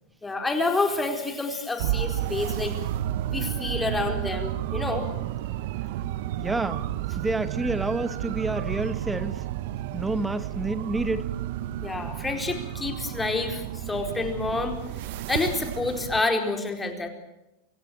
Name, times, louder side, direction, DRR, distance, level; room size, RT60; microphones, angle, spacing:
voice 1, 0.2-2.7 3.3-5.1 11.8-14.8 15.3-17.1, left 3 dB, 10° left, 5 dB, 4.5 m, -28 dB
sound 1, 1.8-16.2, right 12 dB, 65° right, 1.2 m, -31 dB
voice 2, 6.4-6.9 7.2-9.4 9.9-11.3, right 2 dB, 10° right, 12 dB, 1.3 m, -29 dB
26.0 x 16.5 x 8.8 m, 0.93 s
supercardioid pair, 130°, 0 cm